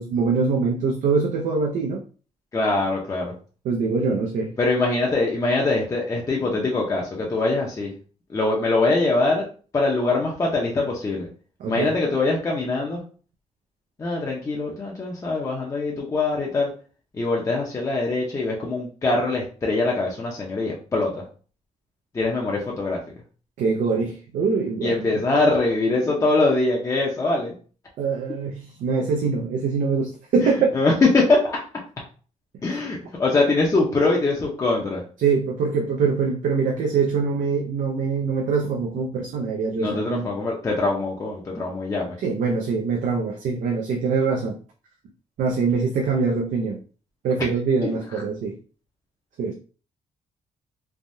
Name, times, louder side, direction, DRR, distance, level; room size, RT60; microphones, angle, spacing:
voice 1, 0.0-2.0 3.6-4.5 11.6-11.9 23.6-25.0 28.0-30.7 35.2-40.3 42.2-44.6 45.4-46.8 47.2-48.6 49.4-49.5, right 5 dB, 85° right, 0 dB, 0.5 m, -23 dB
voice 2, 2.5-3.3 4.6-7.9 8.3-9.5 9.7-11.3 11.7-13.0 14.0-16.7 17.1-21.2 22.1-23.0 24.8-27.5 30.4-31.6 32.6-35.0 39.8-42.2, left 3 dB, 25° left, -2 dB, 0.5 m, -23 dB
3.3 x 2.2 x 2.6 m, 0.39 s
cardioid pair, 135°, 13 cm